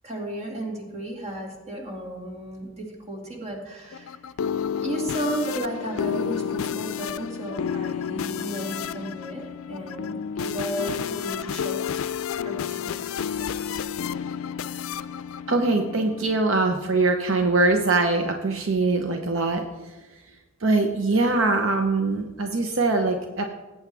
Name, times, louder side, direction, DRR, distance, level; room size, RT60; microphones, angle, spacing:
voice 1, 0.0-4.2 4.8-12.0 12.4-13.2, right 1 dB, 35° right, 0 dB, 2.4 m, -34 dB
sound 1, 3.9-16.4, left 8 dB, 90° left, 0.4 m, -31 dB
voice 2, 15.5-19.6 20.6-23.4, right 3 dB, 70° right, 4 dB, 0.9 m, -22 dB
17.5 x 8.7 x 3.5 m, 1.1 s
head